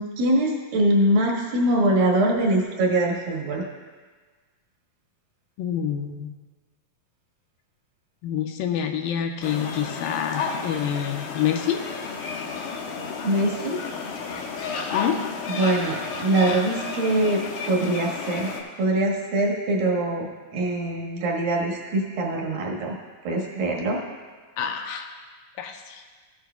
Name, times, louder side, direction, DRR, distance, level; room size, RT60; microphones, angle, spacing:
voice 1, 0.0-3.6 13.2-13.8 15.6-17.4 17.7-18.5 18.8-23.0 23.2-24.0, right 1 dB, 80° right, -2 dB, 3.2 m, -23 dB
voice 2, 5.6-6.3 8.2-11.8 14.9-15.2 24.6-25.1 25.6-26.0, left 9 dB, 90° left, 4 dB, 2.4 m, -27 dB
sound 1, 9.4-18.6, left 5 dB, 75° left, 2.2 m, -32 dB
14.5 x 9.3 x 2.3 m, 1.4 s
omnidirectional pair, 4.0 m